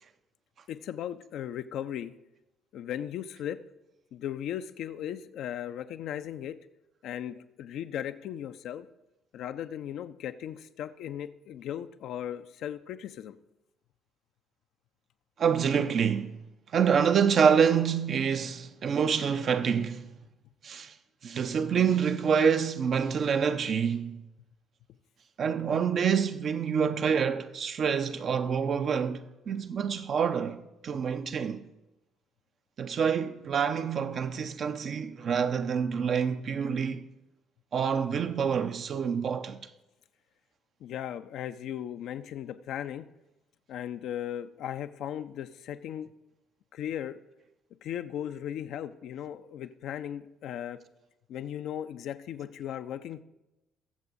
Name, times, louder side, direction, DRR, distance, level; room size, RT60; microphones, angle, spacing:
voice 1, 0.7-2.1 2.7-3.6 4.1-6.6 7.0-8.9 9.3-13.4 40.8-43.1 43.7-46.1 46.7-47.2 47.8-50.8 51.3-53.2, left 10 dB, 60° left, 0.4 m, -37 dB
voice 2, 15.4-16.3 16.7-20.1 20.6-20.9 21.2-24.2 25.4-31.7 32.8-37.1 37.7-39.6, right 7 dB, 50° right, 0.6 m, -27 dB
22.0 x 7.4 x 2.6 m
figure-of-eight pair, 45°, 0 cm